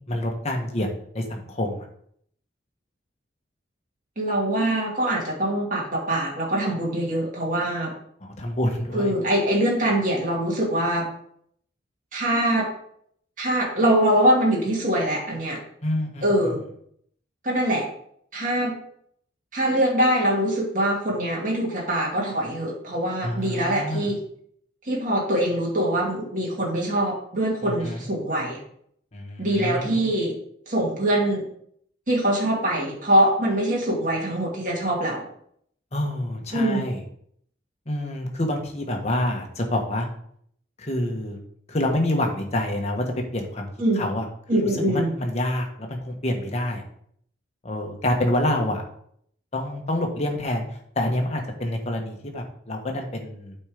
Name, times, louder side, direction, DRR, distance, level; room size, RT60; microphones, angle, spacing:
voice 1, 0.1-0.9 1.1-1.9 8.2-9.1 15.8-16.3 23.2-24.1 27.6-28.1 29.1-30.0 35.9-37.0 37.9-40.1 40.8-41.4 41.7-43.0 43.3-43.7 44.0-44.3 44.9-46.8 47.6-48.8 49.5-50.6 50.9-53.6, left 1 dB, 35° left, 2 dB, 1.3 m, -27 dB
voice 2, 4.2-7.9 8.9-11.1 12.1-12.7 13.4-15.6 16.2-16.6 17.4-17.9 18.3-18.7 19.5-24.2 24.8-28.6 29.4-30.3 30.7-31.4 32.1-35.2 36.5-36.9 43.8-44.0 44.5-45.1, right 1 dB, 45° right, -3 dB, 2.4 m, -23 dB
8.4 x 4.5 x 5.1 m, 0.66 s
head